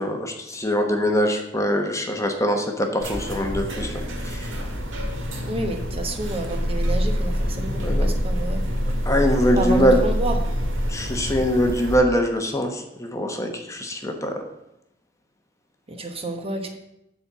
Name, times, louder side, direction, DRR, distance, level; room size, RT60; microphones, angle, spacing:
voice 1, 0.0-3.9 4.2-4.5 7.8-8.1 9.1-10.0 10.9-14.3, equal, 15° left, 4 dB, 1.0 m, -23 dB
sound 1, 3.0-12.0, equal, 70° right, 1.9 m, -26 dB
voice 2, 5.4-8.6 9.6-10.4 15.9-16.8, right 2 dB, 30° right, 4 dB, 1.1 m, -29 dB
10.5 x 4.3 x 7.4 m, 0.87 s
head